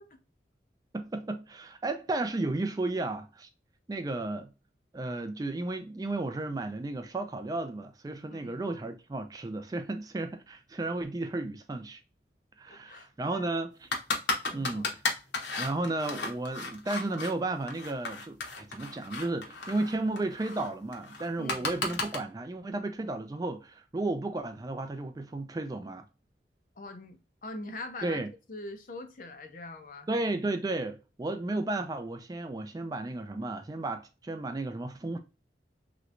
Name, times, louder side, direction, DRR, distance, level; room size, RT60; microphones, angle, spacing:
voice 1, 0.9-3.5 3.9-4.5 4.9-12.0 12.6-13.9 14.5-14.9 15.6-26.0 28.0-28.3 30.1-35.2, right 2 dB, 20° right, 0.3 m, -33 dB
voice 2, 8.3-8.7 12.7-13.6 14.5-14.9 21.4-21.7 26.8-28.2 28.5-30.2, left 2 dB, 50° left, 0.6 m, -43 dB
sound 1, 13.9-17.3 17.7-22.2, left 3 dB, 85° left, 0.9 m, -34 dB
3.1 x 3.0 x 2.4 m
head